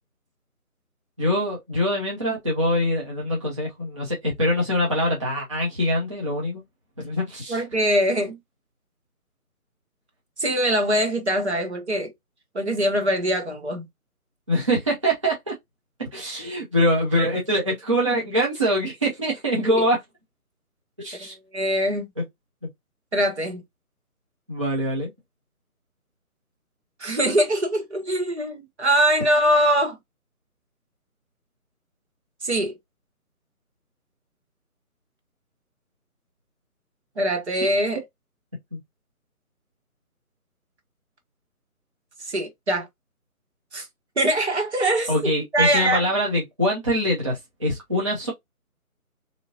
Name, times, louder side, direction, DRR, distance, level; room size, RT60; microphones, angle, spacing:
voice 1, 1.2-6.6 7.0-7.6 14.5-15.5 16.0-20.0 21.0-21.4 22.2-22.3 24.5-25.1 38.7-38.8 45.1-48.3, equal, 20° right, 0.7 m, -24 dB
voice 2, 7.5-8.4 10.4-12.1 12.5-13.9 19.6-19.7 21.5-22.1 23.1-23.6 27.0-30.0 32.4-32.7 37.2-38.0 42.3-42.9 43.7-43.9 44.2-46.0, right 1 dB, 50° right, 1.2 m, -22 dB
3.7 x 2.9 x 2.7 m
figure-of-eight pair, 150°, 44 cm